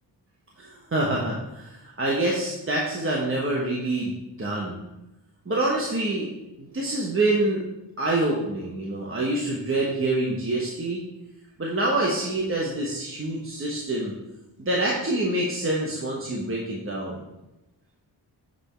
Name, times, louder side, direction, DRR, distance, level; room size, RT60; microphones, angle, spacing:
voice 1, 0.6-4.8 5.5-6.3 6.6-7.6 8.0-11.0 11.6-14.1 14.6-17.2, right 2 dB, 30° right, -3 dB, 1.2 m, -26 dB
7.8 x 3.6 x 4.4 m, 0.97 s
cardioid pair, 65°, 42 cm